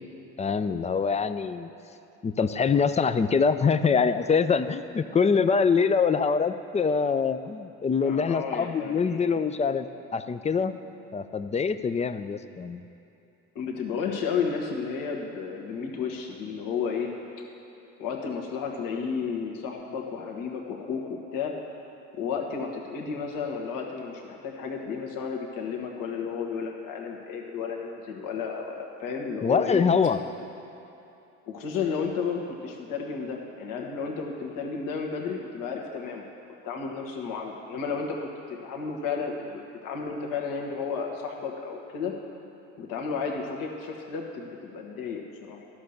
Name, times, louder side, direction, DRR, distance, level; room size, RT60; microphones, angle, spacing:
voice 1, 0.4-1.7 2.2-9.9 10.1-10.8 11.1-12.8 29.4-30.2, left 5 dB, 20° left, 11 dB, 0.4 m, -24 dB
voice 2, 8.0-9.4 13.5-17.1 18.0-21.5 22.1-29.8 31.5-36.3 36.6-42.1 42.8-45.7, left 5 dB, 65° left, 0 dB, 1.4 m, -32 dB
12.5 x 5.8 x 6.5 m, 2.9 s
hypercardioid pair, 70°, 36 cm